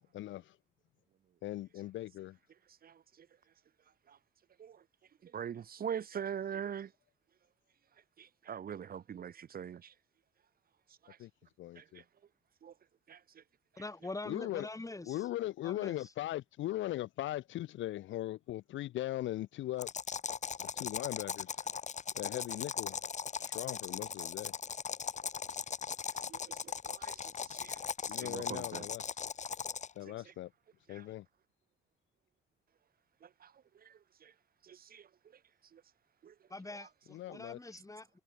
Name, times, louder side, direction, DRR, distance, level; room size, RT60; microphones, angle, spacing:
voice 1, 0.1-0.6 1.4-2.4 11.2-11.3 11.6-12.0 14.3-14.7 15.1-19.9 20.7-21.6 22.2-23.0 23.4-24.5 28.1-29.1 30.0-30.5 30.9-31.3 37.1-37.6, left 14 dB, 75° left, 0.6 m, -39 dB
voice 2, 5.2-6.9 8.2-9.9 11.0-11.2 11.8-11.9 12.6-12.7 13.1-13.2 26.3-28.9 30.0-30.1 30.9-31.0 33.2-33.5 33.8-34.3 34.6-35.1 35.7-35.8 36.2-36.3, right 8 dB, 50° right, 0.9 m, -43 dB
voice 3, 13.8-15.3 15.6-16.1 36.5-38.2, left 2 dB, 15° left, 3.8 m, -44 dB
sound 1, 19.8-30.0, left 6 dB, 35° left, 1.1 m, -39 dB
cardioid pair, 90°, 20 cm